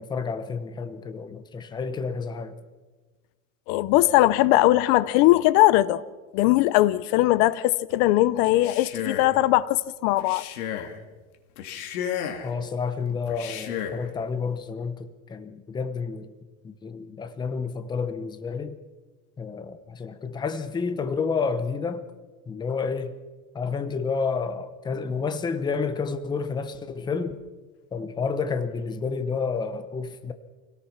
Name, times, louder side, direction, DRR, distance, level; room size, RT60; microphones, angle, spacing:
voice 1, 0.0-2.6 12.4-16.3 16.6-18.8 19.4-22.0 22.5-23.2 23.5-27.4 27.9-30.3, left 5 dB, 10° left, 0.8 m, -30 dB
voice 2, 3.7-6.0 6.3-10.4, left 16 dB, 45° left, 0.7 m, -20 dB
Male speech man speaking, 8.5-9.4 10.2-11.0 11.6-12.5 13.3-14.1, left 9 dB, 90° left, 2.7 m, -33 dB
25.5 x 17.5 x 5.8 m
supercardioid pair, 160°, 42 cm